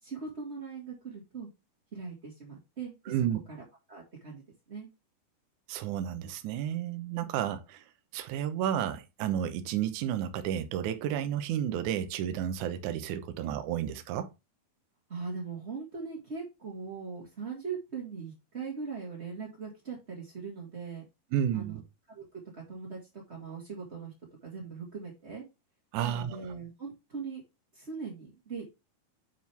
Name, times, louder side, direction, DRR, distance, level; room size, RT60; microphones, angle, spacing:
voice 1, 0.0-1.5 1.9-3.1 3.5-4.4 4.7-4.9 15.1-21.0 21.5-21.8 22.1-23.0 23.3-24.1 24.4-25.4 26.0-27.4 27.7-28.7, right 5 dB, 25° right, 1.4 m, -40 dB
voice 2, 3.1-3.4 5.7-7.8 8.1-14.3 21.3-21.8 25.9-26.4, right 10 dB, 70° right, 2.0 m, -31 dB
9.3 x 5.1 x 3.5 m
omnidirectional pair, 4.4 m